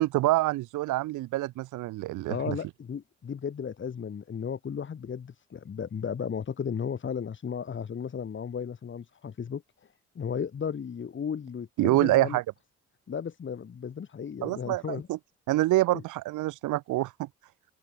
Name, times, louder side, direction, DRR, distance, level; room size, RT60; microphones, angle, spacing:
voice 1, 0.0-2.5 11.8-12.4 14.4-15.2 15.5-17.3, right 17 dB, 80° right, 0.7 m, -26 dB
voice 2, 2.3-9.9 10.1-12.4 13.1-15.1, left 7 dB, 40° left, 1.6 m, -35 dB
open air
cardioid pair, 90°, 30 cm